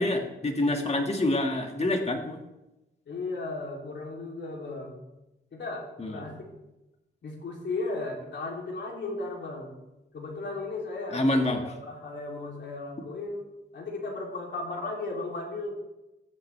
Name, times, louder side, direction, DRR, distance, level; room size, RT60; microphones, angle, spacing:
voice 1, 0.0-2.4 6.0-6.2 11.1-11.6, left 1 dB, 35° left, 3 dB, 2.0 m, -26 dB
voice 2, 3.1-5.0 5.5-6.5 7.2-9.7 10.1-13.5 13.7-15.8, left 3 dB, 65° left, -1 dB, 3.1 m, -35 dB
14.5 x 9.6 x 3.4 m, 0.97 s
cardioid pair, 70°, 20 cm